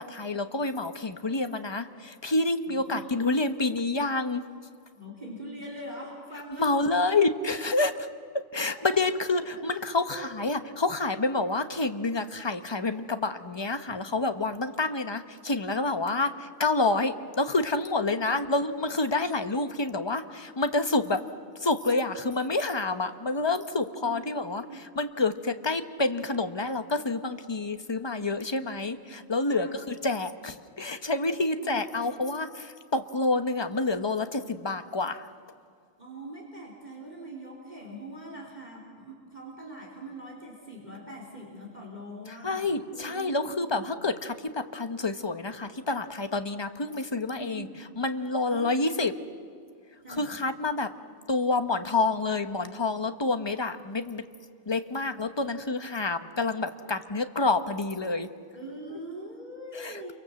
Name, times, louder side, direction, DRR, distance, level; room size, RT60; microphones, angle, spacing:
voice 1, 0.0-4.4 6.6-8.1 8.5-21.2 21.6-35.3 42.3-47.7 48.0-49.1 50.1-50.9 51.3-54.2 54.7-58.3 59.7-60.1, left 3 dB, 25° left, 9 dB, 0.9 m, -28 dB
voice 2, 2.6-3.1 4.9-7.2 8.7-8.8 9.6-9.9 10.1-10.3 13.9-14.0 18.1-18.5 23.7-24.8 28.5-28.7 29.5-29.8 31.6-32.4 36.0-43.9 47.4-47.8 48.5-49.0 50.0-50.3 55.1-55.2 58.5-60.1, right 1 dB, 35° right, -1 dB, 3.6 m, -43 dB
29.0 x 23.5 x 7.7 m, 2.1 s
omnidirectional pair, 1.4 m